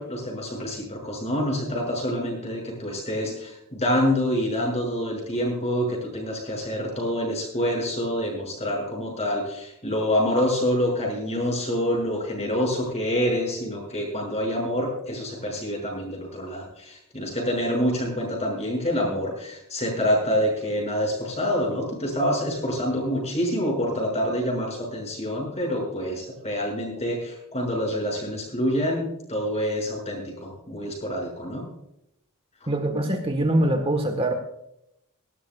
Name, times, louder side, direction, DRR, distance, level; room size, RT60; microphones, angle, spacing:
voice 1, 0.0-31.6 32.6-32.7, equal, 30° left, 0 dB, 6.4 m, -27 dB
voice 2, 32.7-34.3, right 1 dB, 25° right, 5 dB, 1.4 m, -23 dB
19.0 x 16.5 x 2.4 m, 0.80 s
head